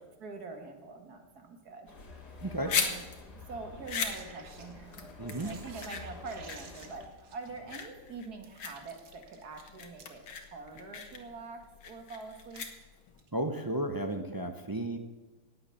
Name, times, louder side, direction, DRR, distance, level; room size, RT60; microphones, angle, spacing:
voice 1, 0.2-1.9 2.2-3.1 3.5-10.2 10.5-12.7, right 4 dB, 60° right, 5 dB, 2.2 m, -45 dB
sound 1, 1.9-7.1, left 3 dB, 65° left, 2.4 m, -49 dB
sound 2, 2.3-13.2, left 6 dB, 90° left, 2.1 m, -38 dB
voice 2, 2.4-2.7 5.2-5.5 13.3-15.0, right 1 dB, 35° right, 6 dB, 0.3 m, -33 dB
sound 3, 4.0-4.9 5.3-7.9 8.4-10.5 12.2-13.3 14.1-14.2, right 5 dB, 80° right, 2.1 m, -53 dB
18.0 x 8.0 x 7.0 m, 1.2 s
omnidirectional pair, 1.9 m